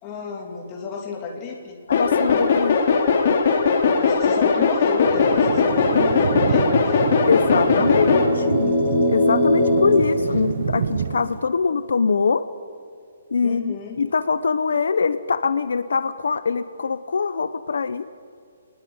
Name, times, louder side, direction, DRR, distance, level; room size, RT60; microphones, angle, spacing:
voice 1, 0.0-1.8 3.8-7.1 7.6-8.2 8.6-8.7 10.2-10.3 13.4-14.0, left 5 dB, 15° left, 0 dB, 2.9 m, -32 dB
voice 2, 1.9-2.8 7.3-8.8 9.1-12.5 13.3-18.1, left 5 dB, 70° left, 12 dB, 1.0 m, -23 dB
sound 1, 1.9-8.3, left 5 dB, 35° left, 3.0 m, -19 dB
Thunder, 5.0-11.4, right 7 dB, 40° right, 0.7 m, -28 dB
sound 2, 7.2-11.0, left 1 dB, ahead, 4.7 m, -22 dB
24.0 x 20.0 x 8.9 m, 2.3 s
hypercardioid pair, 180°, 0 cm